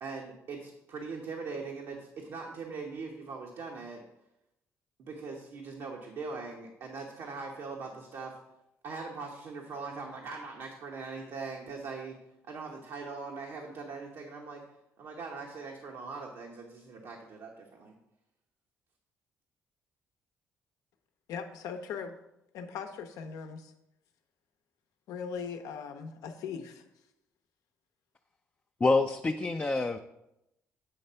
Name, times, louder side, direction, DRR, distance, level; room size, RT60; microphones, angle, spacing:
voice 1, 0.0-4.0 5.0-8.4 8.8-12.2 12.5-14.6 15.0-17.9, right 4 dB, 70° right, 0 dB, 1.0 m, -41 dB
voice 2, 21.3-22.1 22.5-23.7 25.1-26.8, left 6 dB, 80° left, 6 dB, 0.7 m, -39 dB
voice 3, 28.8-30.0, left 3 dB, 25° left, 5 dB, 0.4 m, -26 dB
7.8 x 3.2 x 5.5 m, 0.86 s
supercardioid pair, 70°, 6 cm